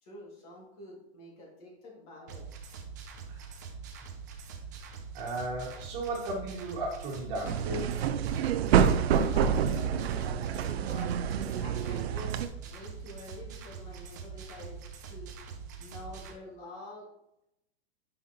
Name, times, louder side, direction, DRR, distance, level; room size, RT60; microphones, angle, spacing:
voice 1, 0.0-2.5 9.2-11.1 11.6-12.4 12.6-14.8 15.1-15.4 15.8-17.1, left 1 dB, 35° left, -2 dB, 2.2 m, -47 dB
sound 1, 2.3-16.3, right 5 dB, 20° right, 0.3 m, -44 dB
voice 2, 5.1-8.0, right 2 dB, 40° right, -1 dB, 1.7 m, -35 dB
sound 2, 7.4-12.5, right 8 dB, 80° right, 0.6 m, -27 dB
8.5 x 5.6 x 2.9 m, 0.83 s
supercardioid pair, 170°, 31 cm